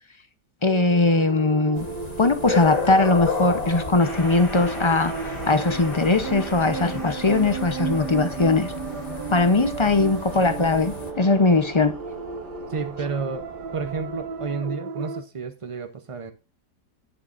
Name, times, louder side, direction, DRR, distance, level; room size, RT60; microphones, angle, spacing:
voice 1, 0.6-1.9 2.2-8.7 9.3-11.9, left 3 dB, 45° left, 0.3 m, -20 dB
sound 1, 0.6-15.2, right 6 dB, 80° right, 1.6 m, -34 dB
sound 2, 1.8-11.1, left 4 dB, 30° left, 0.9 m, -33 dB
sound 3, 4.0-14.5, left 1 dB, 80° left, 4.2 m, -40 dB
voice 2, 12.7-13.5 13.7-16.3, right 4 dB, 45° right, 0.4 m, -31 dB
18.0 x 6.5 x 2.5 m
omnidirectional pair, 1.8 m